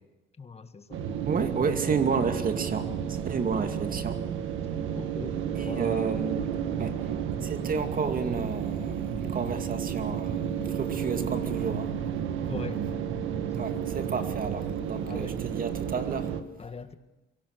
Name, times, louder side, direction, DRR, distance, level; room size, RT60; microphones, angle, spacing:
voice 1, 0.4-1.0 4.9-6.2 12.5-12.8 15.1-15.4 16.3-16.9, left 5 dB, 30° left, 9 dB, 1.8 m, -41 dB
sound 1, 0.9-16.4, right 8 dB, 80° right, 1.7 m, -31 dB
voice 2, 1.2-4.2 5.6-6.5 6.8-6.9 7.4-10.4 10.7-11.9 13.6-16.3, right 5 dB, 45° right, 7 dB, 2.4 m, -31 dB
23.5 x 17.0 x 6.7 m, 1.1 s
cardioid pair, 90°, 20 cm